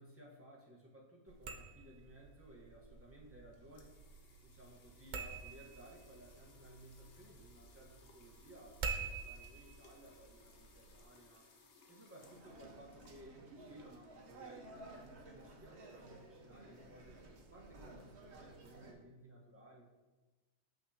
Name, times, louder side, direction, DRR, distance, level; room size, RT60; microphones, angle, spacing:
voice 1, 0.0-4.0 4.4-11.4 11.9-17.2 17.5-19.8, right 1 dB, 10° right, -3 dB, 1.1 m, -58 dB
sound 1, 1.3-11.0, right 5 dB, 85° right, 0.4 m, -48 dB
sound 2, 3.4-13.5, left 3 dB, 50° left, 0.9 m, -65 dB
sound 3, 12.2-18.9, right 2 dB, 55° right, 1.1 m, -55 dB
6.7 x 6.4 x 2.8 m, 1.2 s
omnidirectional pair, 1.4 m